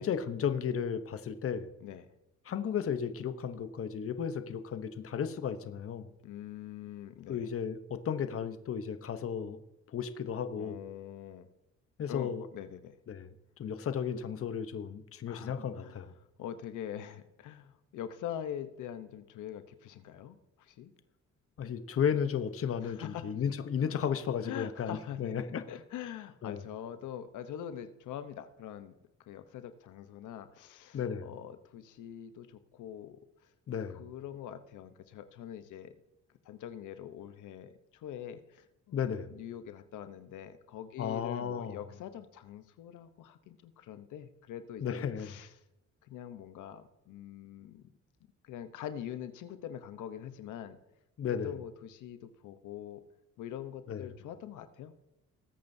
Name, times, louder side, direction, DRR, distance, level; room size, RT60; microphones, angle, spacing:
voice 1, 0.0-1.7 2.5-6.1 7.3-9.6 9.9-10.8 12.0-12.4 13.1-13.3 13.6-16.1 21.6-25.6 26.4-26.6 30.9-31.3 33.7-34.0 38.9-39.3 41.0-41.8 44.8-45.3 51.2-51.5 53.9-54.0, left 7 dB, 50° left, 10 dB, 0.9 m, -34 dB
voice 2, 1.8-2.1 6.2-7.5 10.5-11.5 12.1-13.0 15.3-16.0 16.4-20.9 22.8-23.5 24.4-25.3 25.7-28.9 29.3-33.5 33.9-35.9 36.4-38.7 39.3-45.5 46.0-47.9 48.4-50.8 51.3-53.0 53.4-54.9, left 10 dB, 85° left, 10 dB, 0.9 m, -44 dB
19.5 x 8.6 x 2.7 m, 0.89 s
cardioid pair, 90°, 30 cm